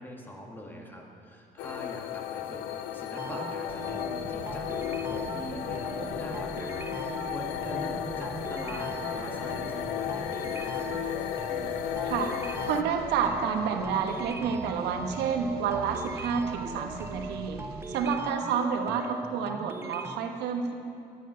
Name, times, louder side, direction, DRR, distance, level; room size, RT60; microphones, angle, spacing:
voice 1, 0.0-10.9, equal, 10° left, 0 dB, 1.9 m, -43 dB
sound 1, 1.6-12.8, left 12 dB, 85° left, 0.5 m, -34 dB
sound 2, 3.1-20.2, right 3 dB, 15° right, 0.5 m, -40 dB
sound 3, 3.7-18.1, right 6 dB, 65° right, 0.9 m, -45 dB
voice 2, 12.0-17.6 17.9-20.7, right 6 dB, 90° right, 4 dB, 1.2 m, -29 dB
12.0 x 10.5 x 5.6 m, 2.5 s
cardioid pair, 110°, 17 cm